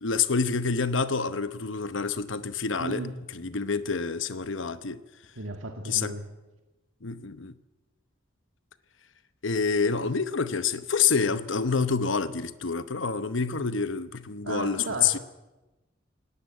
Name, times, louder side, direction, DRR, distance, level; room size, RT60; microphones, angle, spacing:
voice 1, 0.0-3.0 3.3-5.0 5.9-6.1 7.0-7.5 9.4-15.2, left 5 dB, 70° left, 0.9 m, -27 dB
voice 2, 2.8-3.1 5.4-6.3 14.4-15.2, right 2 dB, 85° right, 2.0 m, -35 dB
18.5 x 18.0 x 9.5 m
head